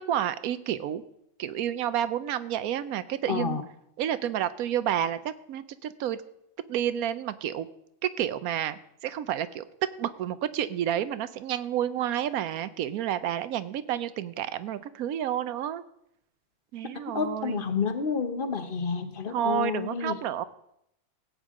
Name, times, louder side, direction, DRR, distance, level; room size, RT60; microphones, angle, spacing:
voice 1, 0.1-1.0 1.4-3.6 4.0-6.2 6.7-7.7 8.0-9.6 10.0-15.8 16.7-17.6 19.3-20.4, right 10 dB, 85° right, 14 dB, 1.1 m, -30 dB
voice 2, 3.3-3.6 17.1-20.2, left 6 dB, 45° left, 9 dB, 1.0 m, -29 dB
16.5 x 9.0 x 3.7 m, 0.78 s
omnidirectional pair, 1.5 m